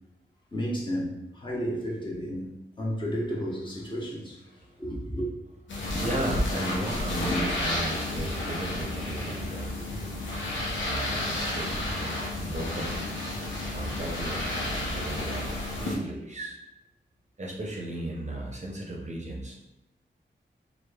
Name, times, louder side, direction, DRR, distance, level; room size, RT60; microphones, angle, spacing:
voice 1, 0.5-4.4 4.8-5.3, equal, 25° left, -4 dB, 0.8 m, -32 dB
voice 2, 4.5-4.8 5.7-13.1 13.7-16.6 17.4-19.6, right 1 dB, 35° right, -2 dB, 0.6 m, -35 dB
sound 1, 5.7-16.0, left 1 dB, 75° left, 0.6 m, -31 dB
3.0 x 2.0 x 2.2 m, 0.90 s
cardioid pair, 45°, 20 cm